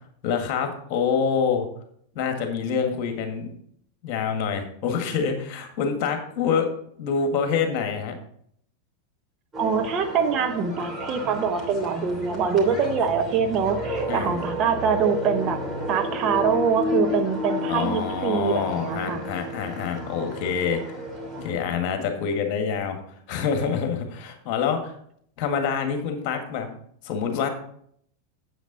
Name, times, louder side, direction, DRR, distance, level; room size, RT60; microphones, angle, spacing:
voice 1, 0.2-1.7 2.1-3.5 4.0-6.7 7.0-8.1 14.1-14.3 17.7-21.1 21.4-23.0 23.3-24.9 25.4-26.7 27.0-27.5, left 6 dB, 40° left, 5 dB, 1.7 m, -26 dB
sound 1, 9.5-21.5, left 1 dB, 15° right, 3.0 m, -31 dB
voice 2, 9.6-15.6 15.9-19.3, right 6 dB, 35° right, 6 dB, 0.9 m, -24 dB
9.2 x 8.2 x 4.0 m, 0.65 s
figure-of-eight pair, 90°, 0 cm